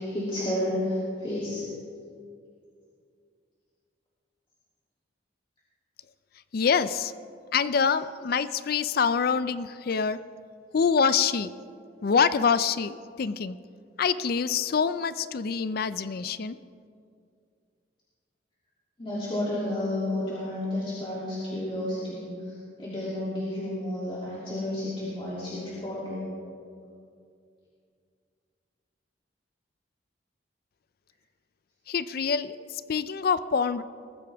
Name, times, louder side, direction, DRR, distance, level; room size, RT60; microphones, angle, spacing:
voice 1, 0.0-1.7 19.0-22.3 22.8-26.2, left 1 dB, 30° left, -8 dB, 2.8 m, -31 dB
voice 2, 6.5-7.1 7.5-10.2 10.7-11.5 12.0-13.6 14.0-16.6 31.9-33.8, left 6 dB, 55° left, 14 dB, 0.4 m, -25 dB
22.0 x 14.5 x 3.5 m, 2.3 s
head